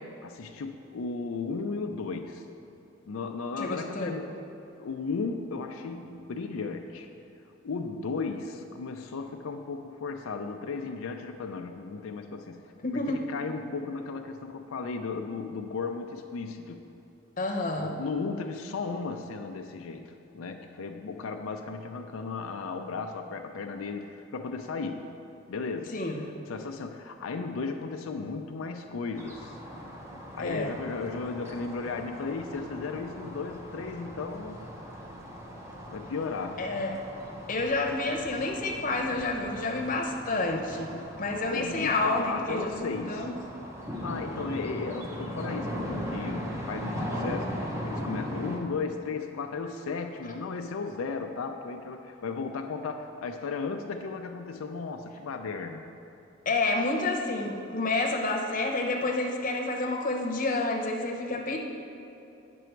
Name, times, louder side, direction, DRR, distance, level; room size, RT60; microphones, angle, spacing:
voice 1, 0.2-2.4 3.1-4.3 4.8-7.1 7.6-12.6 12.9-16.8 17.8-25.1 25.5-25.9 26.4-29.6 30.3-34.7 35.9-36.6 41.5-43.3 44.0-55.8, left 4 dB, 90° left, 4 dB, 0.5 m, -35 dB
voice 2, 3.6-4.2 12.8-13.2 17.4-17.9 25.9-26.3 30.4-30.8 36.6-37.0 37.5-43.3 56.5-61.6, left 2 dB, 40° left, 1 dB, 0.9 m, -29 dB
sound 1, 29.2-48.6, equal, 15° right, 0.8 m, -39 dB
9.2 x 6.1 x 4.5 m, 2.8 s
head